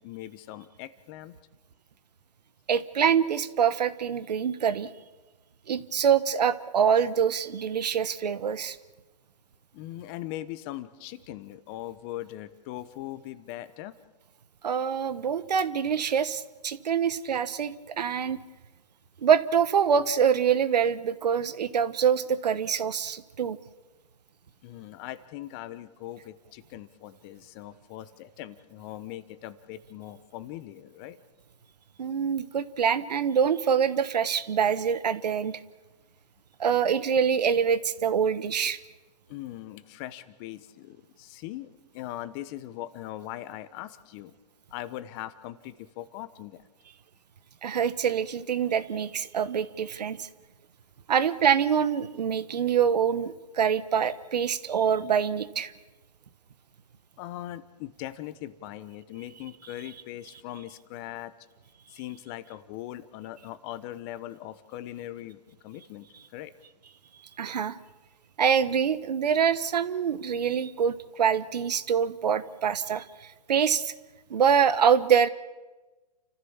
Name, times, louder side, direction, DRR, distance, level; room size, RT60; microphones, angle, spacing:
voice 1, 0.0-1.4 9.7-13.9 24.6-31.2 39.3-41.7 41.9-44.4 44.7-46.6 57.2-61.3 61.9-66.5, left 14 dB, 35° left, 14 dB, 1.2 m, -40 dB
voice 2, 2.7-4.9 5.7-8.8 14.6-18.4 19.2-23.6 32.0-35.6 36.6-38.8 47.6-50.3 51.1-55.7 67.4-67.8 68.4-73.9 74.3-75.3, right 7 dB, 80° right, 15 dB, 1.3 m, -25 dB
29.5 x 14.5 x 7.3 m, 1.2 s
hypercardioid pair, 135°, 21 cm